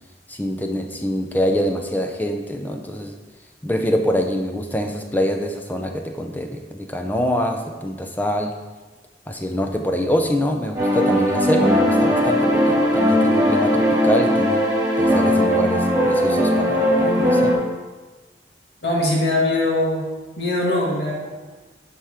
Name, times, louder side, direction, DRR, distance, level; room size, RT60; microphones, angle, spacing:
voice 1, 0.3-3.1 3.6-8.5 9.3-14.7 15.0-17.6, equal, 10° left, 4 dB, 0.6 m, -25 dB
sound 1, 10.7-17.5, equal, 20° right, 2.1 m, -18 dB
voice 2, 18.8-20.0 20.4-21.3, left 1 dB, 75° left, -4 dB, 2.3 m, -21 dB
11.5 x 4.4 x 3.6 m, 1.2 s
head